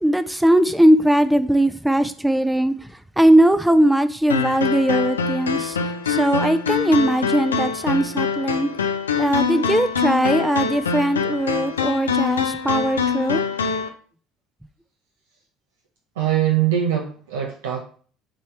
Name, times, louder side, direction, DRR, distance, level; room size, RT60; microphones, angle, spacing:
voice 1, 0.0-2.9 3.2-5.8 6.1-8.7 9.2-13.4, right 1 dB, 5° right, 12 dB, 0.6 m, -19 dB
sound 1, 4.3-13.9, left 6 dB, 80° left, 0.5 m, -24 dB
voice 2, 16.2-17.8, right 10 dB, 70° right, 1 dB, 0.7 m, -22 dB
7.5 x 4.2 x 3.2 m, 0.43 s
figure-of-eight pair, 60°, 0 cm